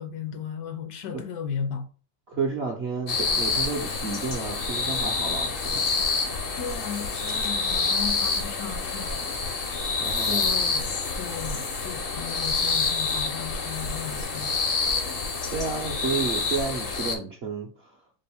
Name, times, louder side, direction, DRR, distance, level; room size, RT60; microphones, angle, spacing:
voice 1, 0.0-1.9 6.6-9.2 10.2-14.5, left 7 dB, 70° left, 1.1 m, -35 dB
voice 2, 2.3-5.9 10.0-10.5 15.5-18.0, right 4 dB, 55° right, 0.7 m, -31 dB
sound 1, 3.1-17.2, left 4 dB, 50° left, 0.7 m, -27 dB
5.1 x 2.5 x 3.5 m
omnidirectional pair, 1.9 m